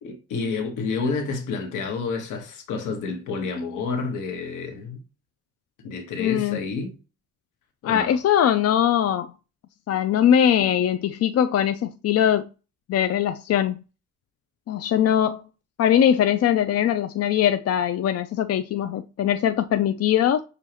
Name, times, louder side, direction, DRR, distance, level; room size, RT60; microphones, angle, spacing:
voice 1, 0.0-5.0 5.8-7.0 7.8-8.2, left 4 dB, 85° left, 1.4 m, -29 dB
voice 2, 6.2-6.6 7.8-9.3 9.9-12.5 12.9-13.8 14.7-15.4 15.8-20.4, left 10 dB, 55° left, 0.5 m, -21 dB
7.0 x 2.6 x 2.9 m
cardioid pair, 90°, 30 cm